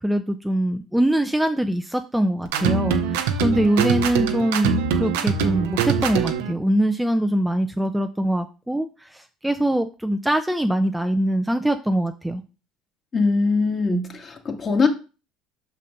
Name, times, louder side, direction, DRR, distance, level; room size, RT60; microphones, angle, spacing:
voice 1, 0.0-12.4, right 1 dB, 5° right, 7 dB, 0.5 m, -23 dB
sound 1, 2.5-6.5, right 7 dB, 85° right, 0.8 m, -23 dB
voice 2, 13.1-14.9, left 3 dB, 35° left, 3 dB, 1.8 m, -21 dB
6.1 x 4.2 x 5.3 m, 0.32 s
supercardioid pair, 80°, 0 cm